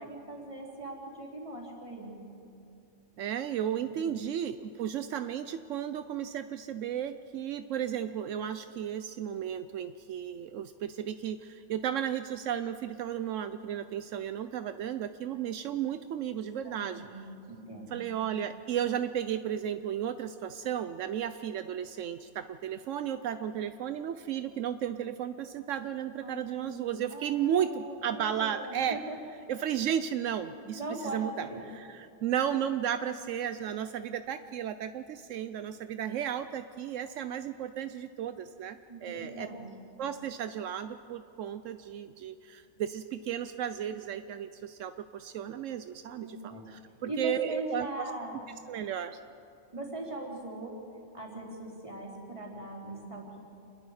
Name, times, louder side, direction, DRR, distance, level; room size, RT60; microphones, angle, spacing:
voice 1, 0.0-2.2 3.8-4.2 16.6-18.0 26.2-29.2 30.7-31.6 38.9-39.7 46.1-46.7 47.0-48.4 49.7-50.8 51.1-53.4, right 1 dB, 25° right, -3 dB, 3.8 m, -40 dB
voice 2, 3.2-17.0 17.9-29.0 29.5-30.8 31.1-31.5 31.7-39.5 40.0-46.3 47.0-48.1 48.7-49.2, right 9 dB, 80° right, 10 dB, 1.0 m, -34 dB
28.0 x 20.5 x 4.9 m, 2.6 s
omnidirectional pair, 1.3 m